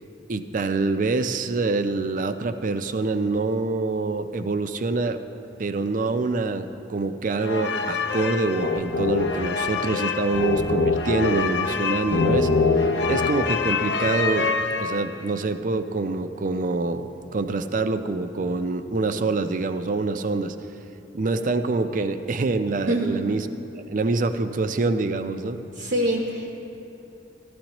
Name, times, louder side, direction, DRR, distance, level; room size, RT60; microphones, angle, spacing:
voice 1, 0.3-5.2 5.6-12.5 13.1-14.5 14.8-20.6 21.1-23.5 23.9-25.6, right 3 dB, 45° right, 9 dB, 0.4 m, -25 dB
sound 1, 7.4-15.3, left 4 dB, 70° left, 0.5 m, -24 dB
voice 2, 25.8-26.6, right 1 dB, 70° right, -1 dB, 0.9 m, -24 dB
14.5 x 13.0 x 3.0 m, 2.9 s
head